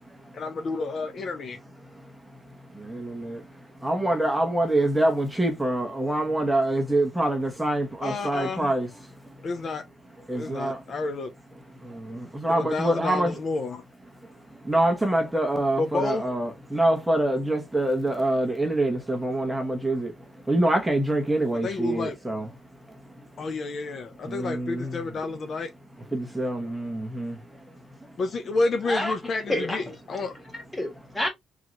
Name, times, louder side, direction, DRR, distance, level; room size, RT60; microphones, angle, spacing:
voice 1, 0.3-1.6 8.0-8.7 9.4-9.8 10.4-11.3 12.5-13.8 15.8-16.2 21.6-22.2 23.4-25.7 28.2-30.4, left 3 dB, 50° left, 0.6 m, -30 dB
voice 2, 2.7-3.4 3.8-8.9 10.3-10.8 11.8-13.3 14.6-20.1 20.5-22.5 24.2-25.0 26.1-27.4, right 1 dB, 5° right, 1.1 m, -25 dB
voice 3, 28.8-30.0 30.5-31.3, left 1 dB, 15° left, 1.7 m, -29 dB
3.8 x 2.8 x 3.1 m
cardioid pair, 90°, 0 cm